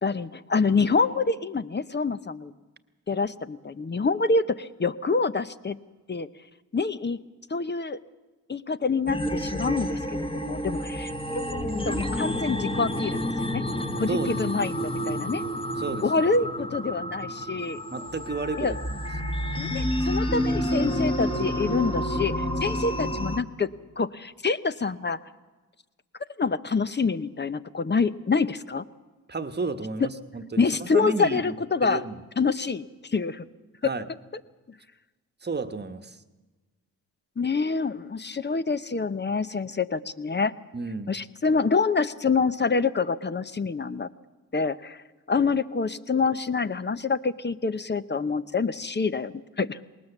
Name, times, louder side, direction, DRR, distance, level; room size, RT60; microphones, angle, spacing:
voice 1, 0.0-2.5 3.1-5.8 6.1-6.3 6.7-7.2 7.5-8.0 8.5-13.2 13.4-13.6 14.0-15.4 16.0-17.8 18.6-18.7 19.6-23.7 24.0-25.2 26.4-28.8 30.6-32.0 32.4-33.5 33.8-33.9 37.4-40.5 41.1-44.1 44.5-45.0 45.3-49.8, left 4 dB, 30° left, 13 dB, 0.8 m, -26 dB
sound 1, 9.1-23.4, equal, 15° left, 1.6 m, -29 dB
voice 2, 14.1-14.6 15.8-16.2 17.9-19.0 29.3-31.6 31.8-32.2 33.8-34.0 35.4-36.2 40.7-41.1, right 3 dB, 30° right, 9 dB, 1.3 m, -32 dB
19.5 x 19.0 x 7.2 m, 1.2 s
cardioid pair, 60°, 36 cm